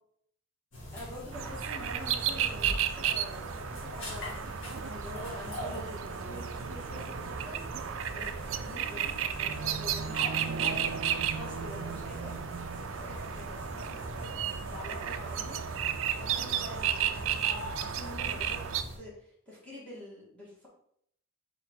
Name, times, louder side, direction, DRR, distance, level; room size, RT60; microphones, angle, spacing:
sound 1, 0.7-19.0, equal, 65° left, 2.3 m, -42 dB
voice 1, 0.9-7.6 8.1-10.9 11.3-12.4 12.7-15.6 16.2-18.6 19.0-20.7, left 1 dB, 5° left, -7 dB, 2.3 m, -47 dB
sound 2, 1.3-18.8, right 9 dB, 75° right, 0.4 m, -33 dB
4.9 x 4.4 x 4.5 m, 0.69 s
head